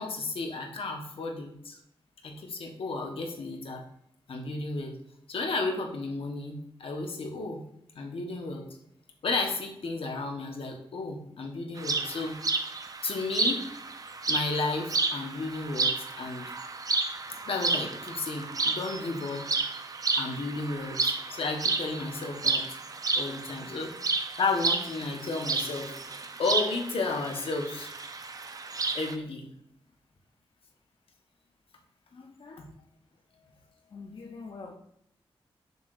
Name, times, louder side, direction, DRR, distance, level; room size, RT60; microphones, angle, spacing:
voice 1, 0.0-1.8 2.2-3.8 4.3-4.9 5.3-7.6 7.9-8.6 9.2-12.4 13.0-13.6 14.3-16.4 17.4-19.5 20.1-22.6 23.1-23.9 24.4-26.0 26.4-27.9 28.9-29.5, left 3 dB, 75° left, 2 dB, 1.3 m, -33 dB
sound 1, 11.8-29.1, right 3 dB, 40° right, 0.6 m, -31 dB
voice 2, 32.1-32.6 33.9-34.8, left 4 dB, 55° left, 0 dB, 0.7 m, -44 dB
6.8 x 6.6 x 2.6 m, 0.76 s
wide cardioid pair, 105°, 10 cm